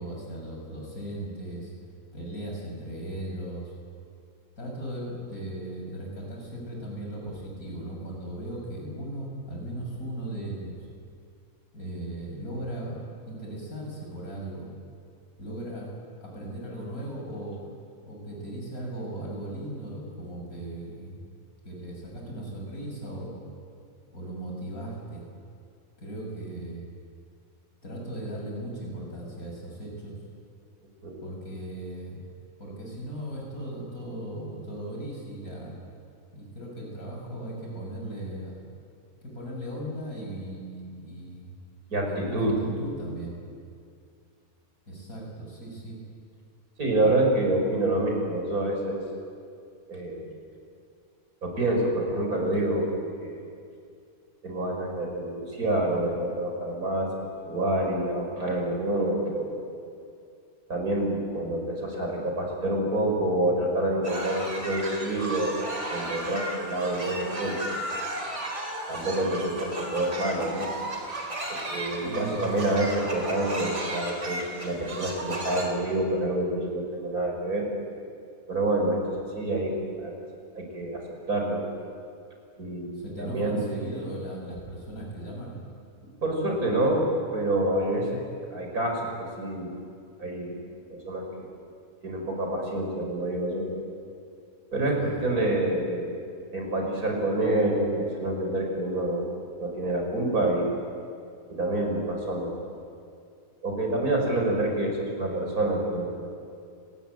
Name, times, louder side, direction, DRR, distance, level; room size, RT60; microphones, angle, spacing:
voice 1, 0.0-1.7 2.1-3.7 4.6-10.9 11.7-13.0 13.3-14.7 15.4-16.0 16.2-17.6 18.0-21.3 21.6-23.4 24.1-25.3 26.0-26.9 27.8-30.2 31.2-32.2 32.6-35.7 36.3-38.6 39.2-41.5 42.0-43.4 44.9-46.0 72.0-72.8 82.9-85.5 95.0-95.3, right 1 dB, 75° left, -1 dB, 7.6 m, -37 dB
voice 2, 41.9-42.6 46.8-49.0 49.9-50.3 51.4-52.9 53.2-53.5 54.4-59.5 60.7-65.6 65.9-67.7 68.9-70.7 71.5-77.7 78.5-80.1 80.5-81.6 82.6-83.6 86.2-88.2 88.5-89.7 90.2-90.5 90.9-91.5 92.0-93.7 94.7-96.1 96.5-99.2 99.6-100.7 101.5-102.6 103.6-106.3, right 1 dB, 80° right, 1 dB, 6.1 m, -27 dB
sound 1, 64.0-75.6, right 1 dB, 50° right, 4.3 m, -34 dB
29.5 x 20.0 x 9.4 m, 2.4 s
omnidirectional pair, 1.5 m